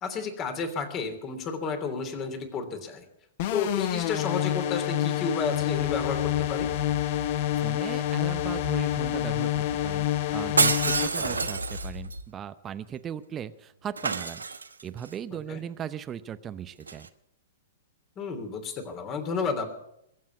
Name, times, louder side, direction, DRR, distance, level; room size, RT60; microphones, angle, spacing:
voice 1, 0.0-3.0 3.5-6.7 11.1-11.5 15.3-15.6 18.2-19.7, left 4 dB, 30° left, 7 dB, 3.1 m, -32 dB
sound 1, 3.4-11.1, left 13 dB, 50° left, 0.9 m, -27 dB
sound 2, 5.4-12.2, left 3 dB, 90° left, 1.9 m, -40 dB
voice 2, 7.6-14.4 14.8-17.1, right 9 dB, 25° right, 11 dB, 0.7 m, -38 dB
Shatter, 10.6-12.2 14.0-15.1 16.8-17.1, right 4 dB, 85° right, 1.1 m, -27 dB
22.5 x 7.5 x 8.4 m, 0.78 s
figure-of-eight pair, 110°, 0 cm